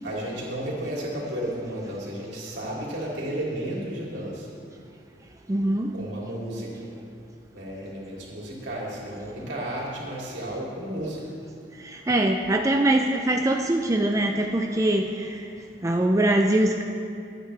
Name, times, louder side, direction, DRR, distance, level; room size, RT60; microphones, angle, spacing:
voice 1, 0.0-4.5 5.9-6.7 7.5-11.2, right 1 dB, 80° right, -4 dB, 3.2 m, -33 dB
voice 2, 5.5-6.0 9.4-9.5 11.7-15.5 15.8-16.8, right 1 dB, 20° right, 3 dB, 0.5 m, -23 dB
23.0 x 9.1 x 3.3 m, 2.5 s
head